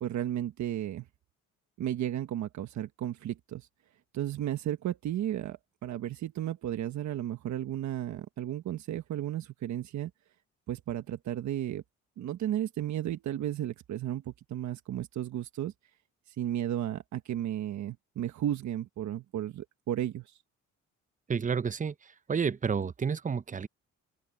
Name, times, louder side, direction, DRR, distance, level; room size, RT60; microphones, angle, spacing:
voice 1, 0.0-1.0 1.8-3.7 4.1-10.1 10.7-11.8 12.2-15.7 16.3-20.3, right 11 dB, 70° right, 1.3 m, -34 dB
voice 2, 21.3-21.9 22.3-23.7, right 6 dB, 25° right, 0.8 m, -30 dB
open air
cardioid pair, 90°, 30 cm